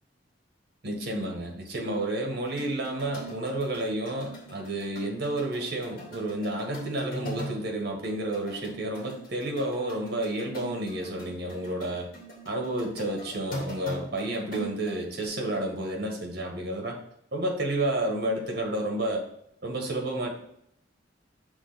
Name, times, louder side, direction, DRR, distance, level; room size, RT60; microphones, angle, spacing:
voice 1, 0.8-12.1 12.5-17.0 17.3-19.3 19.6-20.3, right 1 dB, 60° right, 1 dB, 1.6 m, -30 dB
sound 1, 2.4-7.7 8.0-15.3, right 1 dB, 50° left, 1.9 m, -42 dB
6.4 x 3.6 x 5.0 m, 0.73 s
head